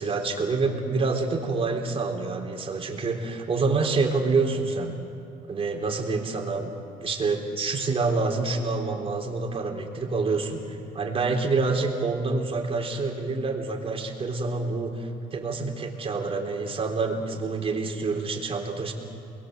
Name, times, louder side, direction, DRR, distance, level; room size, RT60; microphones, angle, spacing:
voice 1, 0.0-4.9 5.5-6.7 7.0-18.9, right 3 dB, 35° right, 2 dB, 3.8 m, -27 dB
29.5 x 21.5 x 8.0 m, 2.5 s
cardioid pair, 110°, 17 cm